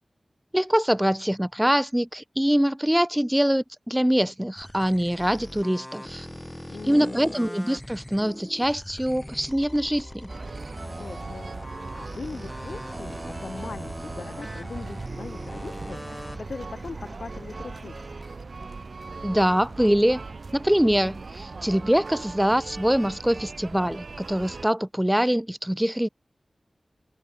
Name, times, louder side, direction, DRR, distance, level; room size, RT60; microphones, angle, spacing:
voice 1, 0.5-6.3 6.8-10.3 19.2-20.2 20.5-26.1, equal, 5° right, 0.4 m, -24 dB
br-laser-vector-reel, 4.6-20.2 20.5-22.8 23.1-23.6, left 1 dB, 10° left, 0.9 m, -42 dB
voice 2, 6.7-7.4 11.0-18.0, left 4 dB, 85° left, 0.7 m, -40 dB
Singing, 9.2-13.1 13.4-13.5, left 2 dB, 45° left, 7.9 m, -55 dB
sound 1, 10.3-24.7, right 4 dB, 65° right, 0.7 m, -39 dB
wide cardioid pair, 90°, 0 cm